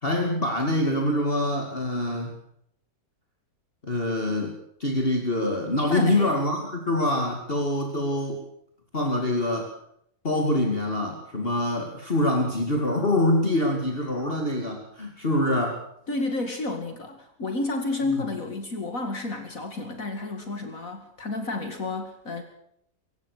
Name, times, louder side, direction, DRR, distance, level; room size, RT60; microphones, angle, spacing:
voice 1, 0.0-2.3 3.8-8.4 8.9-9.7 10.2-15.8, left 1 dB, 35° left, 2 dB, 2.6 m, -25 dB
voice 2, 5.9-6.4 16.1-22.4, left 2 dB, 55° left, 5 dB, 2.7 m, -31 dB
26.0 x 15.5 x 6.6 m, 0.71 s
omnidirectional pair, 1.7 m